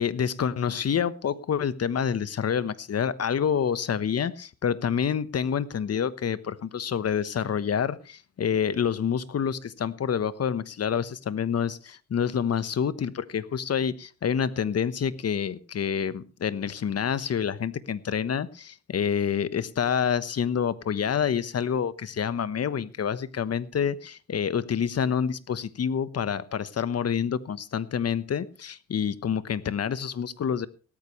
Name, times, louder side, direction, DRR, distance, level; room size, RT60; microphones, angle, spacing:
voice 1, 0.0-30.7, left 7 dB, 55° left, 15 dB, 1.2 m, -27 dB
17.5 x 14.0 x 3.2 m, 0.35 s
cardioid pair, 100°, 31 cm